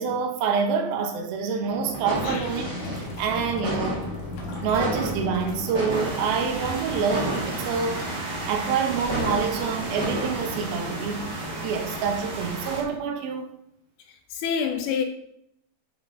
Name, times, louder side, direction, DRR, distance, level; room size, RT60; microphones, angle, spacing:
voice 1, 0.0-4.1 4.6-8.0 8.5-11.3 11.6-13.4, right 6 dB, 70° right, 2.6 m, -27 dB
sound 1, 1.6-11.5, equal, 20° right, 2.2 m, -33 dB
sound 2, 2.1-8.6, left 4 dB, 60° left, 2.6 m, -39 dB
sound 3, 5.9-12.8, right 2 dB, 45° right, 2.7 m, -33 dB
voice 2, 14.3-15.0, left 7 dB, 85° left, 2.2 m, -27 dB
9.6 x 7.3 x 3.9 m
omnidirectional pair, 5.2 m